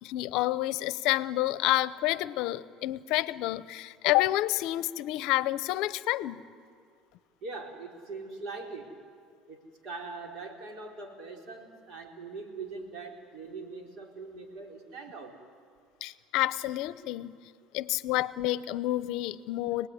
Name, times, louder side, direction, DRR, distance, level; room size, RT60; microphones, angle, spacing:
voice 1, 0.0-6.4 16.0-17.3 17.7-19.9, left 16 dB, 65° left, 17 dB, 0.7 m, -29 dB
voice 2, 7.4-8.9 9.5-15.4, right 3 dB, 55° right, 1 dB, 4.5 m, -42 dB
26.5 x 19.5 x 9.8 m, 2.2 s
cardioid pair, 130°, 0 cm